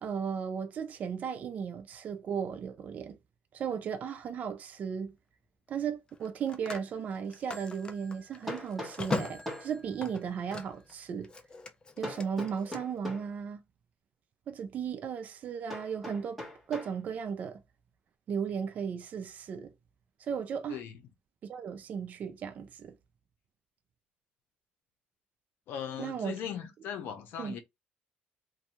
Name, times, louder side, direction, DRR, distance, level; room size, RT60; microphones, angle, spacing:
voice 1, 0.0-3.2 3.5-5.1 5.7-11.3 12.0-13.6 14.5-16.4 16.7-17.6 18.3-19.7 20.2-20.8 21.5-22.9 26.0-26.4 27.4-27.6, right 7 dB, 45° right, 0.4 m, -35 dB
Telephone, 3.9-4.1 6.1-10.9 11.2-12.8, left 3 dB, 25° left, 0.4 m, -40 dB
Hammer, 6.9-7.0 8.5-9.8 12.0-13.3 15.7-17.0, left 1 dB, ahead, 1.1 m, -41 dB
voice 2, 25.7-27.6, left 9 dB, 75° left, 0.6 m, -39 dB
2.6 x 2.2 x 2.9 m
cardioid pair, 130°, 4 cm